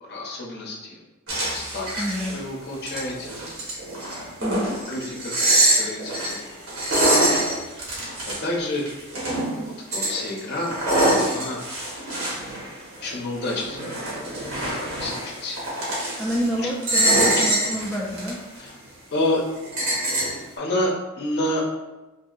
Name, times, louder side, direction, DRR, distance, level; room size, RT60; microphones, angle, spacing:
voice 1, 0.0-1.0 1.5-3.4 4.9-5.4 5.8-6.4 6.9-7.5 8.4-8.8 9.6-10.8 11.2-11.7 13.0-15.6 16.5-16.7 17.4-17.5 18.6-18.7 19.1-19.4 20.6-21.6, left 1 dB, 55° left, -1 dB, 0.6 m, -29 dB
sound 1, 1.3-2.4 2.7-9.6 9.9-13.1 13.4-16.5 16.8-18.3 18.7-18.8 19.6-20.4, right 1 dB, 85° right, 1.2 m, -24 dB
voice 2, 2.0-2.4 4.4-4.9 16.2-18.5, equal, ahead, -5 dB, 0.3 m, -28 dB
3.5 x 2.7 x 2.4 m, 1.1 s
head